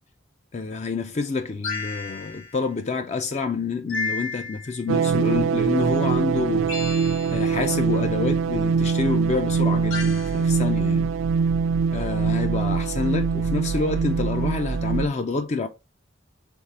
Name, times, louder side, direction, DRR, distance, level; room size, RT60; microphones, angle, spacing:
voice 1, 0.5-6.7 7.3-11.1 11.9-15.7, left 4 dB, 35° left, 0.4 m, -28 dB
sound 1, 1.6-2.6 3.9-4.8 6.7-7.6 9.9-10.4, left 4 dB, 85° left, 2.0 m, -32 dB
sound 2, 4.9-15.1, right 5 dB, 80° right, 0.3 m, -23 dB
3.6 x 3.2 x 4.0 m
head